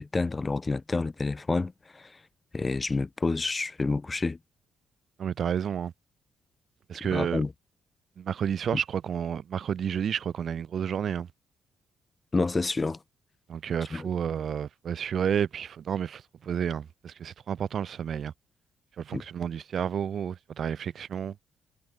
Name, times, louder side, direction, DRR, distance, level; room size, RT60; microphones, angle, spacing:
voice 1, 0.0-2.2 2.5-4.4 7.0-7.5 12.3-13.0 13.9-14.0 19.1-19.2, left 3 dB, 25° left, 0.9 m, -29 dB
voice 2, 5.2-5.9 6.9-7.4 8.2-11.3 13.5-18.3 19.0-21.4, right 8 dB, 55° right, 0.3 m, -31 dB
cardioid pair, 90°, 0 cm